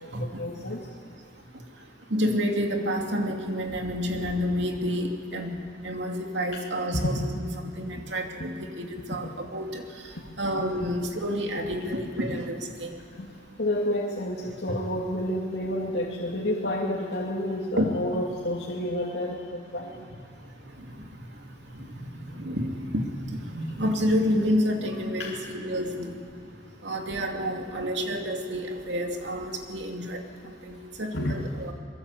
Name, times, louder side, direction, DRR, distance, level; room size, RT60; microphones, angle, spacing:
voice 1, 0.2-0.9 6.5-6.6 6.9-7.2 10.1-10.3 10.8-10.9 11.6-11.9 13.2-13.3 13.6-19.9 25.2-25.4 31.1-31.4, left 1 dB, 85° left, -3 dB, 2.5 m, -30 dB
voice 2, 2.1-5.5 5.8-9.8 10.4-13.0 17.8-17.9 22.3-26.1 26.8-30.2 30.4-31.7, equal, 85° right, 3 dB, 2.7 m, -29 dB
24.0 x 22.5 x 8.3 m, 2.1 s
head